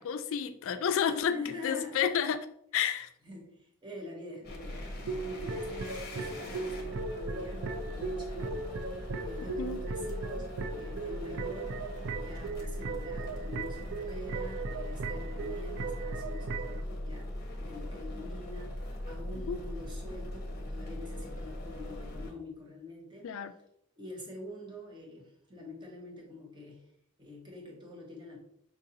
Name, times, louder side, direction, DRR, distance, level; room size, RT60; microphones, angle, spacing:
voice 1, 0.0-1.4 1.6-2.4 2.7-3.1 9.6-9.8 19.5-19.6 23.2-23.5, left 8 dB, 65° left, 11 dB, 0.3 m, -30 dB
voice 2, 1.3-2.1 3.2-11.8 12.1-17.3 17.6-23.3 24.0-26.9 27.2-28.4, left 2 dB, 20° right, -1 dB, 0.9 m, -45 dB
sound 1, 4.4-22.3, left 1 dB, 45° left, 0.7 m, -40 dB
sound 2, 5.0-16.8, right 4 dB, 55° right, 0.3 m, -38 dB
4.6 x 2.5 x 2.7 m, 0.72 s
head